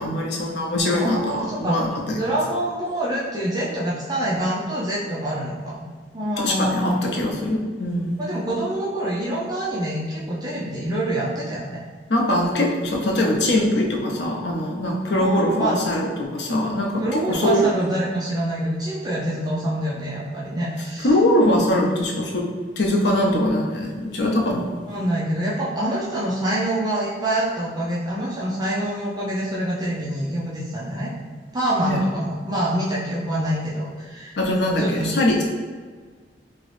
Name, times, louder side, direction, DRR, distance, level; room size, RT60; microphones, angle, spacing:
voice 1, 0.0-2.2 6.4-8.2 12.1-17.7 21.0-22.4 22.8-24.7 31.8-32.0 34.4-35.4, left 1 dB, 65° left, -1 dB, 0.6 m, -22 dB
voice 2, 0.9-1.8 2.2-5.9 6.1-7.0 8.2-11.8 15.2-15.8 17.0-21.1 24.8-31.1 31.5-34.4 34.8-35.1, right 1 dB, 20° right, -6 dB, 0.4 m, -26 dB
2.9 x 2.6 x 3.2 m, 1.5 s
head